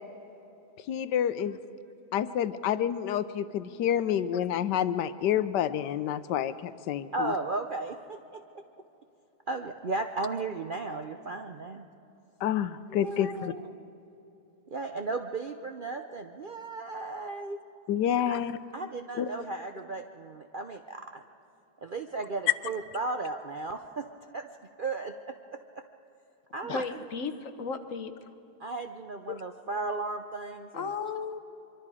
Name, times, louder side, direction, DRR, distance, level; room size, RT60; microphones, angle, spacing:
voice 1, 0.9-1.6 2.1-7.3 12.4-13.5 17.9-18.5 19.2-19.3 26.7-26.8 29.3-29.4, left 10 dB, 85° left, 13 dB, 1.3 m, -28 dB
voice 2, 7.1-8.4 9.5-11.9 12.9-13.8 14.7-17.6 18.3-18.4 18.7-21.2 21.8-24.1 24.3-24.5 24.8-25.1 25.5-25.8 26.5-26.9 28.6-30.9, right 3 dB, 50° right, 5 dB, 0.6 m, -35 dB
voice 3, 26.6-28.3 30.7-31.4, left 5 dB, 55° left, 9 dB, 1.3 m, -35 dB
24.0 x 24.0 x 4.9 m, 3.0 s
omnidirectional pair, 1.8 m